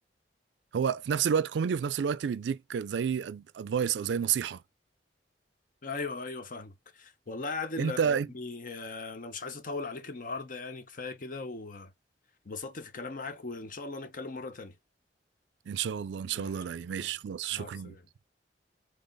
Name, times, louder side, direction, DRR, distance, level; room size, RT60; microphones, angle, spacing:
voice 1, 0.7-4.6 7.8-8.3 15.7-17.9, right 7 dB, 70° right, 0.3 m, -30 dB
voice 2, 5.8-11.9 12.4-14.8 16.3-16.6 17.0-17.1 17.5-18.0, left 3 dB, 50° left, 0.7 m, -39 dB
3.9 x 3.4 x 3.9 m
head